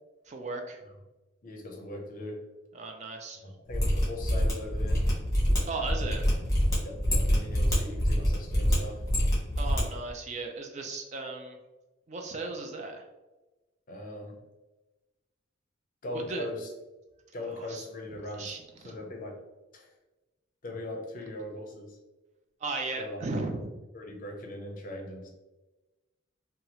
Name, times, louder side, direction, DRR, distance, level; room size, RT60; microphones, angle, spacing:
voice 1, 0.3-0.8 2.7-3.4 5.7-6.3 9.6-11.6 12.1-13.0 16.1-16.5 17.4-17.8 18.3-18.9 22.6-23.7, right 3 dB, 35° right, 3 dB, 0.3 m, -36 dB
voice 2, 1.4-2.4 3.4-5.1 6.8-9.0 13.9-14.4 16.0-16.7 17.3-18.6 18.8-19.4 19.7-19.9 20.6-22.0 23.0-23.2 23.9-25.3, left 1 dB, 45° left, 1 dB, 0.6 m, -40 dB
Mechanisms, 3.7-9.8 10.1-10.2, equal, 15° left, 1.0 m, -26 dB
2.8 x 2.3 x 2.9 m, 1.1 s
head